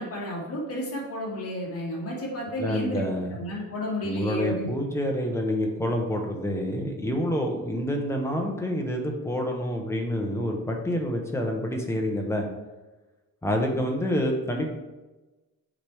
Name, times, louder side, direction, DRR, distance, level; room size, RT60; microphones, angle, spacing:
voice 1, 0.0-4.7, left 1 dB, 40° left, -5 dB, 2.1 m, -32 dB
voice 2, 2.6-3.3 4.0-12.5 13.4-14.8, equal, 10° left, 1 dB, 0.8 m, -28 dB
7.2 x 3.4 x 4.7 m, 1.1 s
wide cardioid pair, 165°, 34 cm